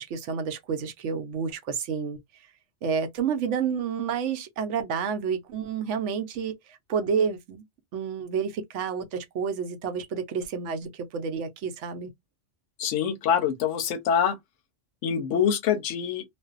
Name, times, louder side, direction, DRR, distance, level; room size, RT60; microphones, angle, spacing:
voice 1, 0.0-2.2 2.8-7.6 7.9-12.1, right 6 dB, 75° right, 0.9 m, -29 dB
voice 2, 12.8-14.4 15.0-16.2, left 8 dB, 85° left, 1.0 m, -25 dB
2.5 x 2.3 x 2.4 m
omnidirectional pair, 1.2 m